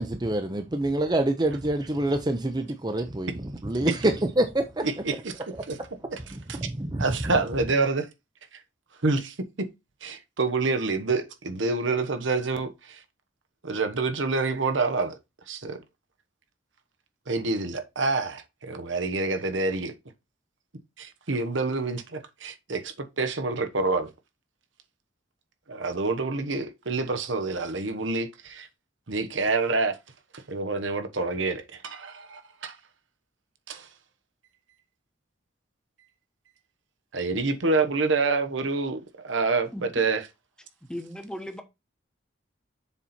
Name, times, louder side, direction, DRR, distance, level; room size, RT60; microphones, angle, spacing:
voice 1, 0.0-4.8 6.3-7.0, right 1 dB, 20° right, 0.6 m, -26 dB
voice 2, 4.8-5.4 5.7-5.8 6.1-6.7 7.0-8.1 9.0-9.3 10.0-13.0 13.6-15.2 15.5-15.8 17.3-19.9 21.0-24.1 25.7-28.7 29.1-30.0 30.5-32.8 33.7-33.9 37.1-39.0 39.2-40.2, right 3 dB, 80° right, 1.1 m, -27 dB
voice 3, 40.9-41.6, equal, 5° left, 0.9 m, -36 dB
7.1 x 4.3 x 4.2 m
head